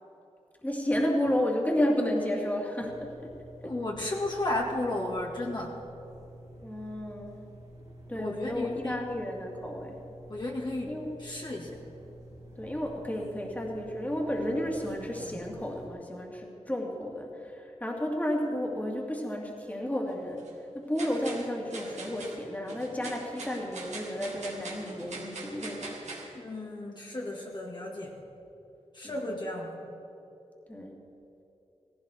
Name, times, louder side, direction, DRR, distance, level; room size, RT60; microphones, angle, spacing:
voice 1, 0.6-3.3 3.6-3.7 6.6-7.5 8.1-10.0 10.9-11.1 12.6-26.1 29.0-29.3 30.7-31.0, left 1 dB, 15° left, 0 dB, 2.5 m, -32 dB
sound 1, 2.8-15.9, right 1 dB, 75° right, 3.2 m, -48 dB
voice 2, 3.6-5.7 8.1-9.0 10.3-10.9 11.2-11.8 26.3-28.2 28.9-29.8, left 1 dB, 40° left, -2 dB, 2.1 m, -33 dB
sound 2, 20.1-20.5 20.9-26.3, right 3 dB, 90° right, 2.5 m, -42 dB
17.5 x 16.5 x 4.5 m, 2.9 s
wide cardioid pair, 85°, 11 cm